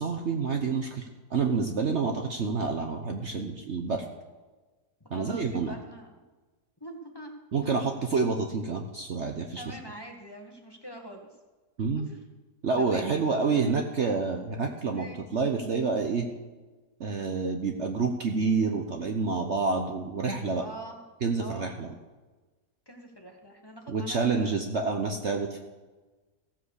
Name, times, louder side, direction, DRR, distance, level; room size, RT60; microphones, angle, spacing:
voice 1, 0.0-4.0 5.1-5.7 7.5-9.6 11.8-12.1 12.6-15.1 15.3-16.3 17.0-20.6 21.2-21.9 23.9-25.6, right 4 dB, 50° right, 4 dB, 1.1 m, -28 dB
voice 2, 5.1-6.2 6.8-7.3 9.6-11.3 12.1-12.2 12.8-13.8 14.9-15.2 20.6-21.0 21.4-21.7 22.9-24.6, right 1 dB, 15° left, 1 dB, 1.4 m, -44 dB
15.5 x 7.7 x 6.5 m, 1.3 s
omnidirectional pair, 1.7 m